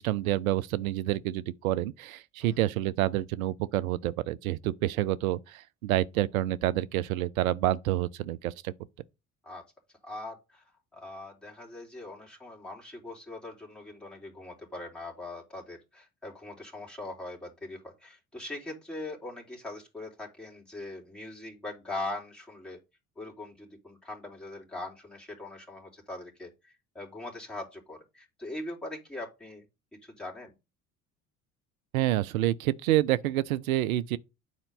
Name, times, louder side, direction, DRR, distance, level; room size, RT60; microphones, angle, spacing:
voice 1, 0.0-8.7 31.9-34.2, right 14 dB, 70° right, 0.6 m, -28 dB
voice 2, 10.0-10.6 10.9-22.8 23.2-29.6 30.0-30.5, left 2 dB, ahead, 3.4 m, -41 dB
9.3 x 4.4 x 5.2 m
figure-of-eight pair, 55°, 44 cm